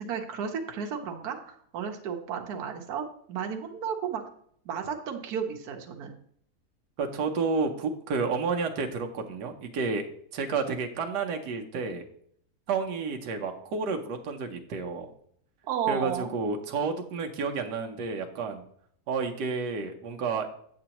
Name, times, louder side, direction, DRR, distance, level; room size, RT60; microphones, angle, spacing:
voice 1, 0.0-4.2 4.6-6.1 15.6-16.3, right 7 dB, 70° right, 3 dB, 1.3 m, -33 dB
voice 2, 7.0-10.0 10.3-12.0 12.7-15.1 15.9-18.6 19.1-20.5, right 4 dB, 90° right, 3 dB, 1.4 m, -30 dB
8.3 x 7.7 x 2.9 m, 0.65 s
omnidirectional pair, 1.7 m